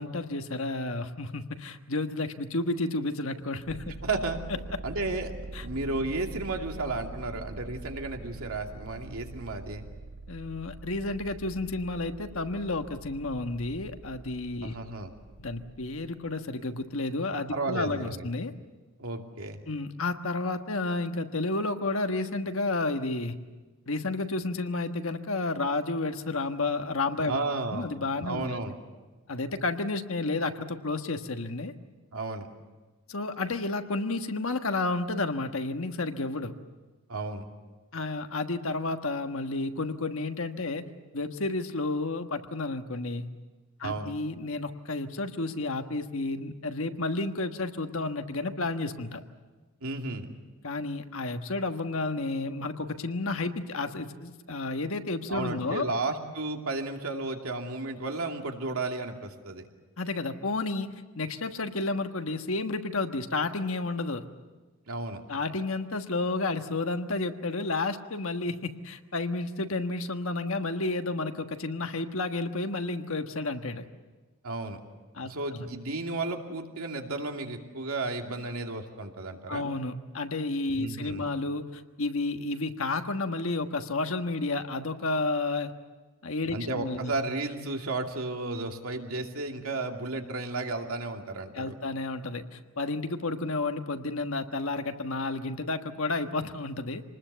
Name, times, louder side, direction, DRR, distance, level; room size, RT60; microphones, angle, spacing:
voice 1, 0.0-4.0 5.5-5.6 10.3-14.8 15.4-18.5 19.7-23.4 23.9-27.4 27.7-28.5 29.3-31.7 33.1-36.5 37.9-40.9 41.1-43.3 43.8-49.2 50.6-55.9 60.0-60.9 61.2-64.2 65.3-73.8 75.1-75.7 79.5-85.7 86.2-87.1 91.5-97.0, left 2 dB, 75° left, 6 dB, 1.4 m, -31 dB
sound 1, 3.7-16.3, right 2 dB, 50° right, 0.8 m, -44 dB
voice 2, 4.0-4.4 4.8-5.3 5.6-9.9 14.6-15.1 17.5-18.3 19.0-19.6 27.2-27.9 28.2-28.7 32.1-32.5 37.1-37.4 43.8-44.1 49.8-50.4 55.3-59.7 64.9-65.2 74.4-74.8 75.2-79.7 80.8-81.3 86.5-91.7, right 2 dB, 90° right, 2 dB, 2.6 m, -33 dB
26.5 x 20.0 x 8.2 m, 1.3 s
head